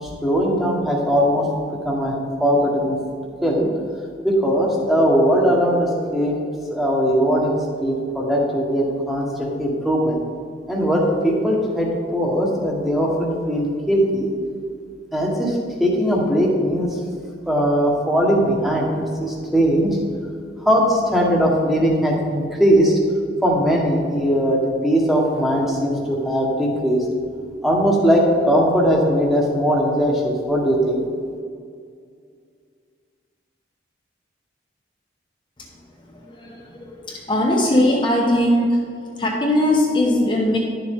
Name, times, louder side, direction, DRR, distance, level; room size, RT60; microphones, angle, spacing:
voice 1, 0.0-1.5 1.8-2.1 2.4-3.0 3.4-3.7 4.2-6.4 6.7-10.2 10.7-14.3 15.1-17.0 17.5-19.9 20.6-22.9 23.4-27.0 27.6-31.0, equal, ahead, -2 dB, 1.2 m, -19 dB
voice 2, 35.6-38.8 39.2-40.6, left 1 dB, 25° left, -2 dB, 0.9 m, -20 dB
10.5 x 7.0 x 3.6 m, 2.2 s
head